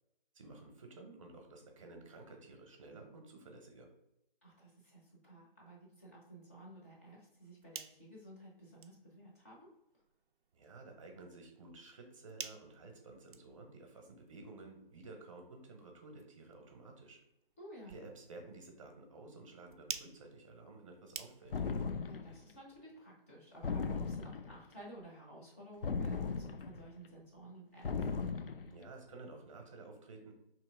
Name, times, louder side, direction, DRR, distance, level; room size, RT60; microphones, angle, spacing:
voice 1, 0.3-3.9 10.5-17.2 17.9-21.5 28.6-30.3, right 3 dB, 35° right, 3 dB, 0.8 m, -53 dB
voice 2, 4.4-9.7 17.6-18.0 22.0-28.1, right 1 dB, 15° left, -4 dB, 0.6 m, -54 dB
sound 1, 7.3-21.8, right 6 dB, 60° right, 0.4 m, -53 dB
sound 2, 21.5-22.4 23.6-24.6 25.8-26.9 27.8-28.7, left 5 dB, 70° left, 0.5 m, -37 dB
3.0 x 2.9 x 4.5 m, 0.86 s
figure-of-eight pair, 155°, 29 cm